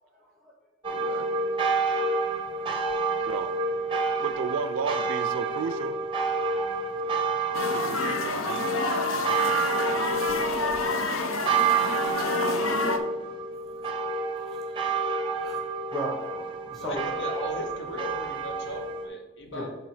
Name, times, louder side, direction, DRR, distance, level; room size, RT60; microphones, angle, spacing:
sound 1, 0.8-19.1, right 4 dB, 25° right, 0.7 m, -29 dB
voice 1, 0.9-1.4 3.3-3.5 4.2-6.0 7.7-8.7, right 6 dB, 70° right, 13 dB, 0.3 m, -33 dB
sound 2, 7.5-13.0, left 3 dB, 85° left, 0.6 m, -29 dB
voice 2, 15.4-17.0 19.5-19.6, equal, ahead, -2 dB, 2.0 m, -36 dB
voice 3, 16.6-19.7, left 1 dB, 60° left, 3 dB, 1.0 m, -37 dB
6.8 x 4.1 x 4.7 m, 1.1 s
head